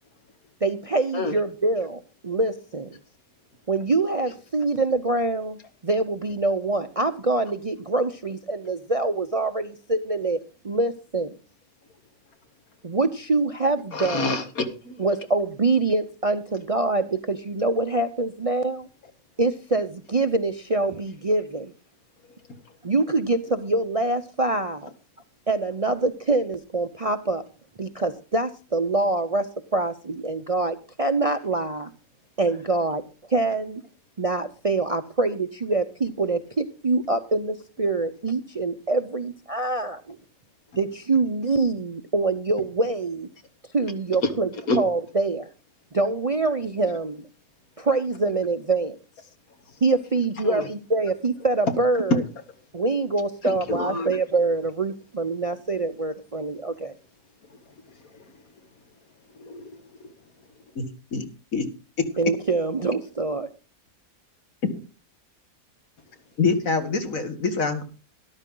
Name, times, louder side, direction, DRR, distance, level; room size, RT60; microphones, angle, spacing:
voice 1, 0.6-3.0 3.7-11.3 12.8-14.3 15.0-18.9 19.4-21.7 22.8-24.9 25.5-27.4 27.8-31.9 32.4-33.8 34.2-40.2 40.8-43.3 43.7-44.5 44.8-45.5 45.9-47.3 47.8-49.0 49.8-52.2 52.7-56.9 62.2-63.5, right 3 dB, 35° right, 0.6 m, -25 dB
voice 2, 13.9-15.0 44.2-44.3 44.7-44.8 50.4-50.7 52.1-52.2 53.4-54.1 59.4-59.7 60.0-60.1, left 2 dB, 85° left, 2.2 m, -27 dB
voice 3, 66.4-67.8, left 4 dB, 70° left, 2.3 m, -24 dB
13.0 x 12.5 x 3.8 m
omnidirectional pair, 1.5 m